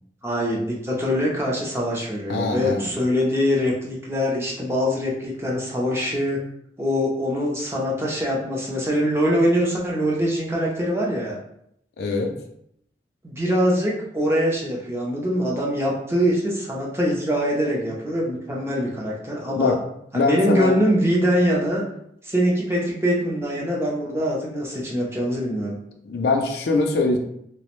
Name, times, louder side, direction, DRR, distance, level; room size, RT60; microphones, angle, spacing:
voice 1, 0.2-6.4 6.8-11.4 13.2-19.8 20.1-21.8 22.2-25.8, equal, 15° right, -3 dB, 0.4 m, -23 dB
voice 2, 2.3-2.9 12.0-12.3 19.5-19.8 20.1-20.8 26.0-27.2, left 3 dB, 60° left, 2 dB, 0.4 m, -22 dB
2.4 x 2.0 x 2.9 m, 0.73 s
head